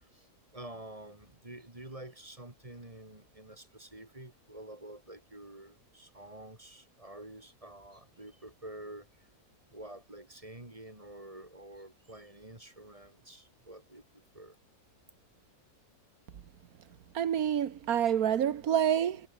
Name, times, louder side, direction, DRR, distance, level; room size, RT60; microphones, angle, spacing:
voice 1, 0.0-9.1 9.7-14.6, right 1 dB, 20° right, 2.6 m, -48 dB
voice 2, 17.1-19.2, right 9 dB, 70° right, 1.6 m, -27 dB
omnidirectional pair, 1.6 m